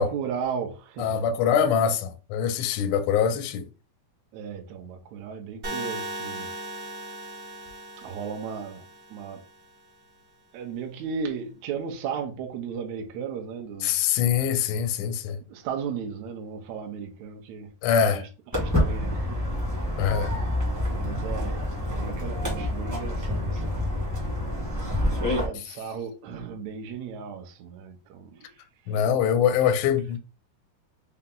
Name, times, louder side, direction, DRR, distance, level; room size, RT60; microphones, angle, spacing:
voice 1, 0.0-1.2 4.3-6.5 8.0-8.8 9.1-9.4 10.5-13.9 15.5-17.7 18.0-19.4 19.7-20.1 20.9-21.6 21.9-23.9 24.7-28.6 28.8-29.2, right 6 dB, 75° right, 1.7 m, -36 dB
voice 2, 1.0-3.7 13.8-15.4 17.8-18.2 20.0-20.3 28.9-30.2, left 8 dB, 80° left, 1.8 m, -23 dB
sound 1, 5.6-9.6, right 1 dB, 60° right, 0.8 m, -37 dB
Walk footsteps, 18.5-25.4, left 1 dB, 20° right, 0.4 m, -27 dB
5.5 x 2.0 x 3.7 m
omnidirectional pair, 3.9 m